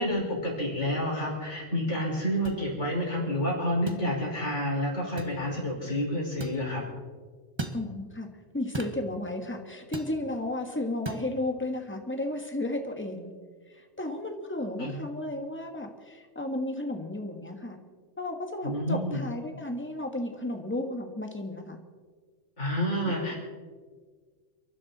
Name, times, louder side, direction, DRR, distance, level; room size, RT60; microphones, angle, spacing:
voice 1, 0.0-6.8 14.8-15.0 18.6-19.2 22.6-23.4, equal, 70° left, -3 dB, 5.9 m, -29 dB
sound 1, 2.4-2.6 3.9-4.0 5.2-5.4 6.4-6.6 7.6-7.8 8.7-9.0 9.9-10.1 11.0-11.2, right 2 dB, 25° right, 1.3 m, -36 dB
voice 2, 7.7-8.3 8.5-13.3 13.7-17.8 18.2-21.8, left 1 dB, 10° left, 4 dB, 1.6 m, -33 dB
29.0 x 11.5 x 4.2 m, 1.5 s
omnidirectional pair, 1.3 m